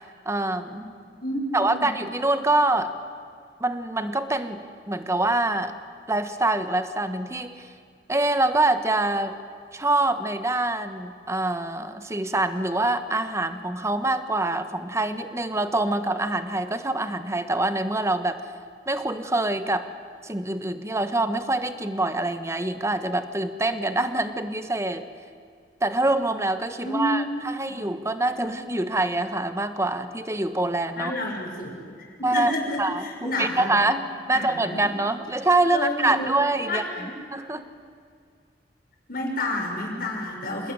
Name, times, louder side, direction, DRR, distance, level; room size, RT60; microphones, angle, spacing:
voice 1, 0.2-0.8 1.5-2.9 3.6-5.7 6.1-7.7 8.1-9.4 9.7-18.4 18.9-19.9 20.2-25.1 25.8-31.1 32.2-32.5 32.8-36.8 37.3-37.6, right 2 dB, 15° right, 9 dB, 1.4 m, -25 dB
voice 2, 1.2-1.9 26.8-27.3 31.0-31.8 32.2-33.7 34.3-34.8 35.7-36.3 36.7-37.1 39.1-40.7, left 1 dB, 55° left, 0 dB, 5.8 m, -30 dB
27.0 x 20.0 x 9.8 m, 2.2 s
head